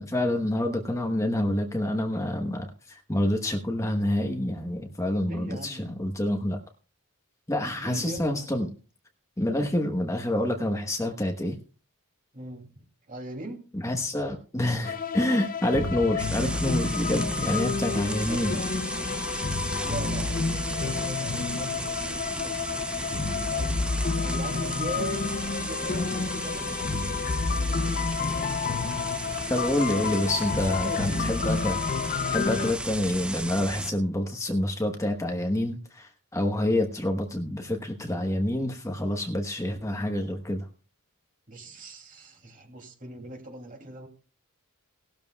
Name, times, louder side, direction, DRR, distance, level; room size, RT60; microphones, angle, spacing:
voice 1, 0.0-6.6 7.5-8.7 9.4-11.6 13.7-18.5 29.5-31.8 32.3-40.7, left 1 dB, 15° left, 3 dB, 1.1 m, -27 dB
voice 2, 5.2-6.0 7.8-8.5 12.3-12.7 13.1-13.6 17.7-18.7 19.0-19.2 19.8-23.7 24.2-28.0 29.6-30.2 30.7-31.4 41.5-44.1, right 1 dB, 40° right, 3 dB, 2.6 m, -41 dB
sound 1, 14.8-32.7, left 5 dB, 40° left, 0.6 m, -30 dB
sound 2, 16.2-33.9, right 1 dB, 5° right, 0.6 m, -35 dB
18.5 x 12.5 x 2.3 m, 0.36 s
head